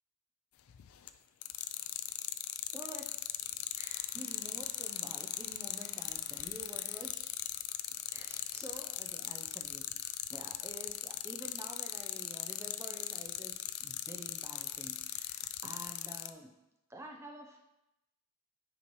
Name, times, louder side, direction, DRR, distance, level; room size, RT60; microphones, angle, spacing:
sound 1, 0.7-1.1 1.4-16.3, left 14 dB, 70° left, 0.4 m, -38 dB
voice 1, 2.7-3.3 3.8-7.2 8.1-9.8 10.3-13.5 13.8-16.5 16.9-17.6, right 1 dB, 10° right, 1 dB, 0.5 m, -49 dB
sound 2, 3.7-7.3, left 3 dB, 30° left, 0.7 m, -58 dB
9.9 x 4.5 x 3.1 m, 0.89 s
head